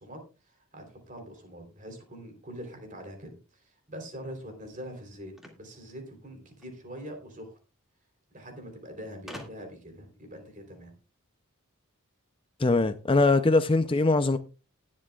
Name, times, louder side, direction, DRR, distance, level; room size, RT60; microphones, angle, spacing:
voice 1, 0.0-7.6 8.3-10.9, equal, 35° right, 3.5 m, -44 dB
sound 1, 5.3-6.8 7.9-8.0 8.2-8.3 9.3-9.9, left 1 dB, ahead, 2.1 m, -46 dB
voice 2, 12.6-14.4, left 3 dB, 25° left, 0.5 m, -22 dB
19.5 x 7.5 x 2.3 m
head